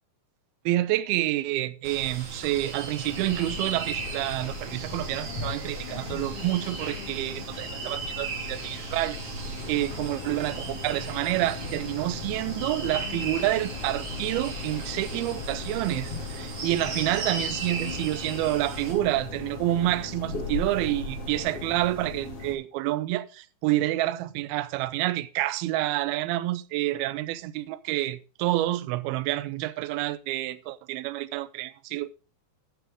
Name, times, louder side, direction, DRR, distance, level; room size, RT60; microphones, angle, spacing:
voice 1, 0.7-9.2 9.7-32.1, right 15 dB, 85° right, 2.2 m, -28 dB
sound 1, 1.8-18.9, right 4 dB, 55° right, 4.4 m, -37 dB
sound 2, 3.1-22.5, left 4 dB, 40° left, 3.0 m, -38 dB
12.5 x 8.1 x 3.5 m
omnidirectional pair, 5.1 m